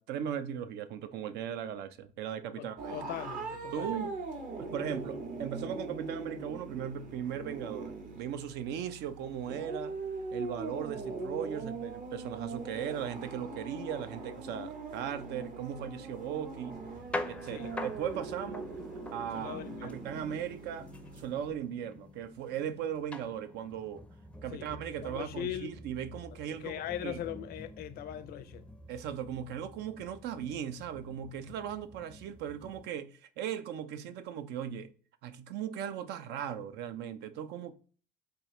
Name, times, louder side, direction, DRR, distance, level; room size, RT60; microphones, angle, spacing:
voice 1, 0.0-3.0 3.7-4.1 4.6-9.9 10.3-16.8 17.3-18.7 19.1-20.9 21.1-24.0 24.4-27.2 28.9-34.9 35.2-37.7, right 9 dB, 80° right, 0.5 m, -38 dB
voice 2, 2.6-4.0 17.5-17.8 19.3-20.1 24.5-24.7 25.0-25.7 26.6-28.7, left 11 dB, 65° left, 0.4 m, -40 dB
sound 1, 2.8-21.5, right 3 dB, 50° right, 0.8 m, -41 dB
sound 2, 16.7-32.9, left 2 dB, 5° left, 0.4 m, -46 dB
4.3 x 2.4 x 3.0 m
cardioid pair, 110°, 17 cm